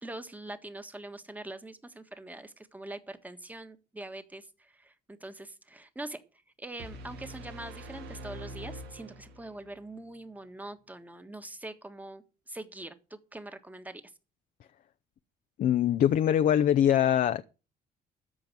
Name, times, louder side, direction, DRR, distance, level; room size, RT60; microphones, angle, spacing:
voice 1, 0.0-6.2 6.6-14.0, right 2 dB, 10° right, 1.5 m, -43 dB
sound 1, 6.8-9.8, right 1 dB, 85° right, 2.2 m, -44 dB
voice 2, 15.6-17.4, left 10 dB, 55° left, 0.7 m, -23 dB
13.5 x 5.2 x 9.0 m
cardioid pair, 110°, 17 cm